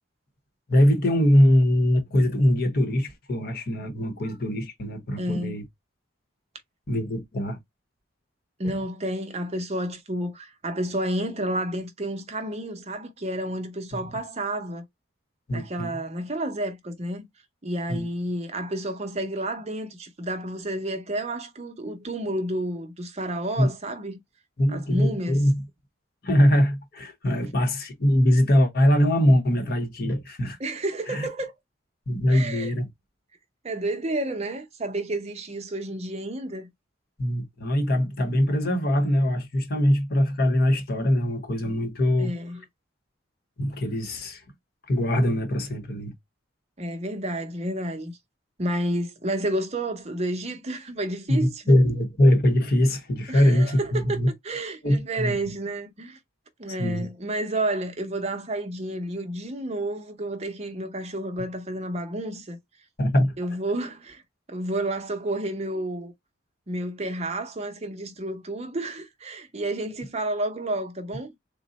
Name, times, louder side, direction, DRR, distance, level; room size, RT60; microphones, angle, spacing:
voice 1, 0.7-5.6 6.9-7.6 13.9-14.1 15.5-16.0 17.9-18.1 23.6-23.7 24.6-25.6 26.2-30.6 31.1-31.3 32.1-32.9 37.2-42.3 43.6-44.4 44.9-46.1 51.3-54.3 54.8-55.4 56.8-57.1 63.0-63.4, equal, 50° left, 0.9 m, -22 dB
voice 2, 5.2-5.6 8.6-14.8 15.5-17.3 17.6-24.2 24.7-25.4 30.6-31.5 32.3-32.8 33.6-36.7 42.2-42.6 46.8-48.1 48.6-51.8 53.3-56.2 56.6-62.6 63.4-64.2 64.5-66.1 66.7-71.3, right 1 dB, 35° right, 0.7 m, -30 dB
3.8 x 2.1 x 3.9 m
head